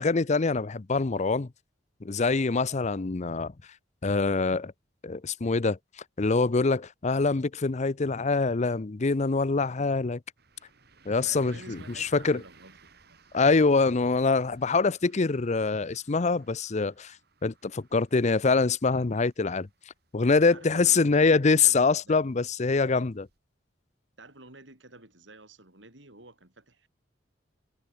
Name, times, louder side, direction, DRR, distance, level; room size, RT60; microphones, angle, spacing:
voice 1, 0.0-1.5 2.0-3.5 4.0-4.7 5.0-5.8 6.2-10.2 11.1-12.4 13.3-17.1 17.4-19.7 20.1-23.3, left 4 dB, 40° left, 0.6 m, -24 dB
sound 1, 10.4-23.4, right 4 dB, 60° right, 4.9 m, -60 dB
voice 2, 11.2-12.8 13.1-13.2 20.4-22.2 24.2-26.9, right 2 dB, 75° right, 7.3 m, -50 dB
head